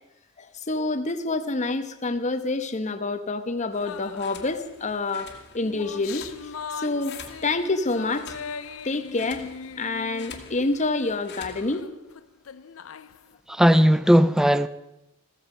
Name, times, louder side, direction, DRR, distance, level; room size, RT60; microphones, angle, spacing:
voice 1, 0.4-6.3 6.8-7.2 7.4-8.3 8.8-11.9, left 3 dB, 35° left, 1.0 m, -27 dB
sound 1, 3.7-11.8, left 5 dB, 55° left, 1.9 m, -47 dB
sound 2, 3.8-4.7 5.3-11.2 11.5-13.4, left 6 dB, 85° left, 0.6 m, -40 dB
voice 2, 13.5-14.7, equal, 5° right, 0.5 m, -17 dB
15.0 x 14.5 x 5.0 m
head